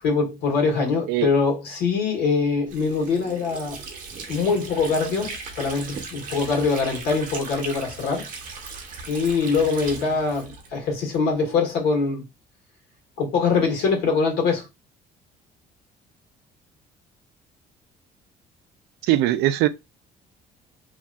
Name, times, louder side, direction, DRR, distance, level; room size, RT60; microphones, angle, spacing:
voice 1, 0.0-3.8 4.3-8.3 9.1-12.2 13.2-14.7, left 4 dB, 80° left, 1.4 m, -23 dB
Water / Sink (filling or washing), 2.7-11.2, right 4 dB, 55° right, 0.9 m, -38 dB
voice 2, 19.0-19.7, right 14 dB, 85° right, 0.4 m, -20 dB
2.8 x 2.6 x 2.2 m
cardioid pair, 110°, 17 cm